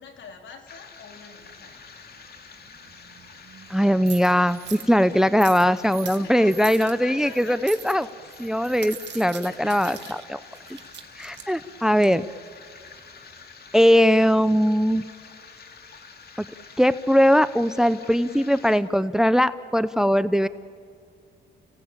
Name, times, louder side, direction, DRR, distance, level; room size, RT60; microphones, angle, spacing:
voice 1, 0.0-1.9 6.2-7.6 9.5-10.2, left 6 dB, 70° left, 4 dB, 3.4 m, -44 dB
sound 1, 0.7-18.8, left 5 dB, 50° left, 2.5 m, -47 dB
sound 2, 1.4-13.4, right 10 dB, 65° right, 1.7 m, -44 dB
voice 2, 3.7-8.1 8.4-10.0 11.2-12.3 13.7-15.1 16.4-16.5 16.8-20.5, equal, 5° right, 15 dB, 0.6 m, -20 dB
30.0 x 17.5 x 8.8 m, 2.3 s
cardioid pair, 90°, 20 cm